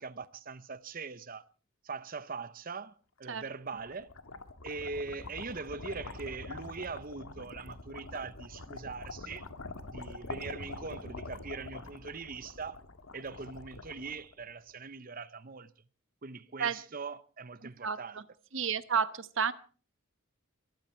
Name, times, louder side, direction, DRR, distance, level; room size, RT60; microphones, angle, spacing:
voice 1, 0.0-1.4 1.8-4.1 4.6-9.5 9.9-12.8 13.1-15.7 16.2-18.2, right 4 dB, 40° right, 0.8 m, -41 dB
sound 1, 3.6-14.7, left 3 dB, 75° left, 1.7 m, -45 dB
voice 2, 17.6-18.2 18.5-19.5, right 6 dB, 60° right, 1.0 m, -31 dB
22.5 x 14.5 x 4.4 m
head